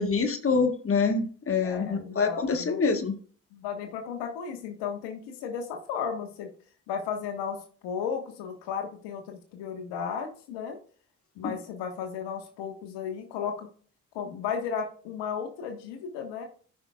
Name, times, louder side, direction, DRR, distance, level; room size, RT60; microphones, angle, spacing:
voice 1, 0.0-3.1 11.4-11.5, left 4 dB, 30° left, 7 dB, 1.5 m, -26 dB
voice 2, 1.6-2.8 3.5-6.5 6.9-10.8 11.3-13.7 14.1-16.5, left 7 dB, 75° left, 4 dB, 1.6 m, -34 dB
13.5 x 5.8 x 2.4 m, 0.43 s
hypercardioid pair, 45°, 42 cm